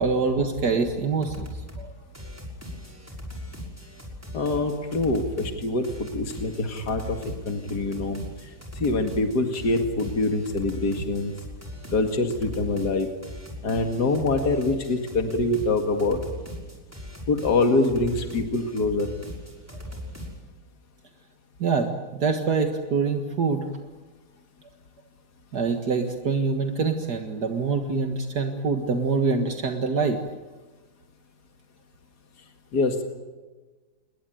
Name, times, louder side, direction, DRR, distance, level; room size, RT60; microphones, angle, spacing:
voice 1, 0.0-1.5 1.8-1.9 21.6-23.7 25.5-30.2, right 4 dB, 70° right, 4 dB, 2.3 m, -25 dB
sound 1, 0.9-1.0 1.2-1.9 2.1-20.3, left 1 dB, 10° right, 5.9 m, -39 dB
voice 2, 4.3-7.2 7.5-11.3 11.9-13.1 13.6-16.2 17.3-19.1 32.7-33.0, left 2 dB, 70° left, 5 dB, 2.6 m, -25 dB
29.0 x 21.5 x 9.2 m, 1.3 s
omnidirectional pair, 1.8 m